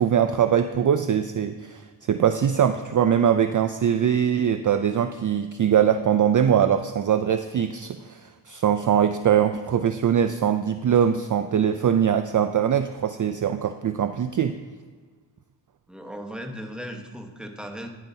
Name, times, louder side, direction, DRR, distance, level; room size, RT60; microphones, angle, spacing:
voice 1, 0.0-1.8 2.1-14.5, right 8 dB, 45° right, 9 dB, 0.4 m, -22 dB
voice 2, 15.9-17.9, equal, ahead, 3 dB, 1.2 m, -37 dB
10.5 x 9.1 x 2.8 m, 1.5 s
cardioid pair, 55°, 48 cm